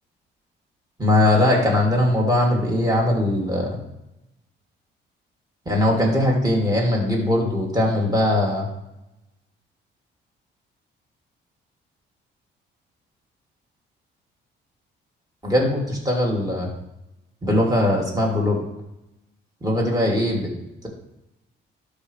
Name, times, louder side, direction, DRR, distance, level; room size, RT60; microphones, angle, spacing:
voice 1, 1.0-3.7 5.7-8.6 15.4-16.7 17.4-18.6 19.6-20.5, left 1 dB, 20° right, -2 dB, 2.8 m, -20 dB
12.0 x 5.3 x 3.4 m, 0.88 s
cardioid pair, 90°, 20 cm